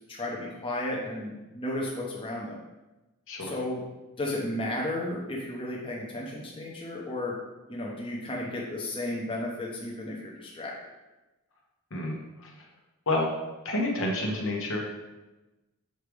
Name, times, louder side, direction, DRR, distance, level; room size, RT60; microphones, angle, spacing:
voice 1, 0.1-2.6 3.4-3.8 4.2-7.4 7.7-10.7, left 1 dB, 25° left, -3 dB, 0.9 m, -33 dB
voice 2, 11.9-12.5 13.1-13.3 13.6-14.8, left 1 dB, 60° left, -1 dB, 1.2 m, -29 dB
6.7 x 4.7 x 3.4 m, 1.1 s
head